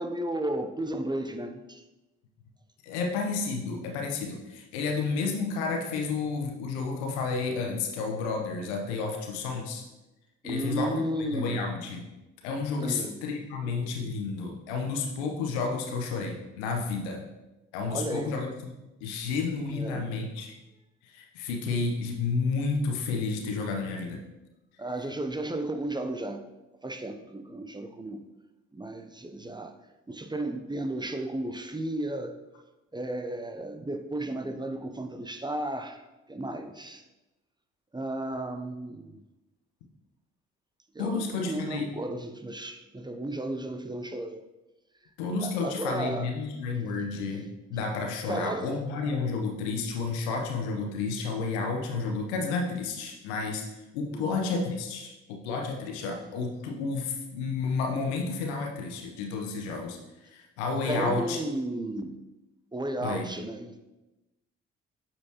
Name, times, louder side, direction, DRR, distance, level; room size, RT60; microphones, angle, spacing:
voice 1, 0.0-1.8 10.4-11.6 12.8-13.2 17.9-18.3 19.7-20.1 24.8-26.4 26.8-28.2 28.7-29.7 30.1-32.3 32.9-36.0 36.3-37.0 37.9-39.2 40.9-44.4 45.4-46.3 48.3-48.7 54.1-54.3 60.9-62.2 62.7-63.8, right 1 dB, 15° right, 6 dB, 0.6 m, -34 dB
voice 2, 2.8-9.8 10.4-12.1 12.4-17.2 17.7-18.8 19.0-20.5 21.1-24.2 41.0-41.9 45.2-47.4 47.7-53.7 53.9-61.4 63.0-63.3, left 4 dB, 80° left, 2 dB, 0.9 m, -31 dB
8.4 x 4.4 x 2.9 m, 1.0 s
hypercardioid pair, 45°, 33 cm